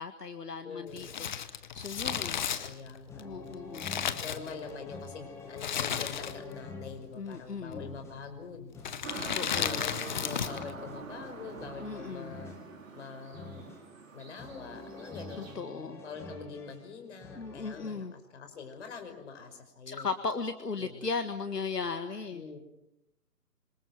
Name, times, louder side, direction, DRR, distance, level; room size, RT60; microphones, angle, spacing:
voice 1, 0.0-2.4 3.1-3.9 7.1-7.9 9.1-9.8 11.8-12.4 15.4-16.0 17.3-18.1 19.9-22.4, left 4 dB, 75° left, 8 dB, 1.8 m, -37 dB
voice 2, 0.6-1.1 2.6-3.5 4.2-8.7 9.2-12.5 12.9-13.6 14.1-15.5 16.0-20.1 20.8-21.1 22.3-22.6, left 5 dB, 45° left, 6 dB, 5.6 m, -44 dB
Crumpling crinkling, 0.9-4.9 5.6-6.6 6.9-7.0 7.8-8.1 8.8-10.7 11.0-11.1, left 8 dB, 30° left, 1.1 m, -34 dB
sound 1, 2.0-17.9, left 3 dB, 5° left, 2.0 m, -48 dB
sound 2, 9.0-15.5, right 4 dB, 50° right, 4.8 m, -45 dB
27.0 x 26.5 x 6.2 m, 0.89 s
figure-of-eight pair, 140°, 48 cm